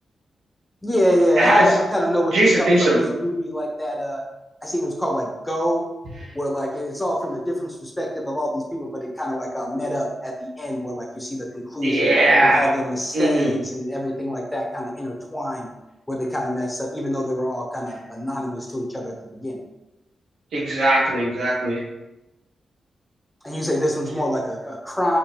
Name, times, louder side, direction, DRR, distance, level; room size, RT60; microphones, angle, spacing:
voice 1, 0.8-4.2 4.6-5.8 6.3-12.1 12.4-15.7 16.1-19.6 23.4-25.2, equal, 10° left, -1 dB, 1.2 m, -25 dB
voice 2, 1.4-1.7 2.3-3.0 11.8-12.6 13.1-13.5 20.5-21.8, right 1 dB, 85° right, -5 dB, 1.4 m, -18 dB
4.9 x 3.5 x 3.1 m, 0.99 s
cardioid pair, 55°, 0 cm